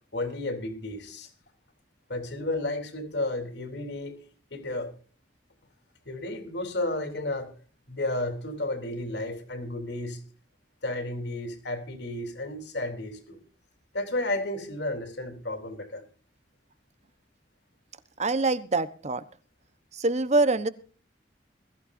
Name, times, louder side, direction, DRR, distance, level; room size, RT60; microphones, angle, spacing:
voice 1, 0.1-1.3 2.1-4.2 4.5-4.9 6.1-7.5 7.9-10.2 10.8-13.4 13.9-16.0, left 2 dB, 70° left, 3.6 m, -32 dB
voice 2, 18.2-19.2 19.9-20.7, right 3 dB, 40° right, 1.1 m, -25 dB
21.5 x 14.5 x 2.7 m
head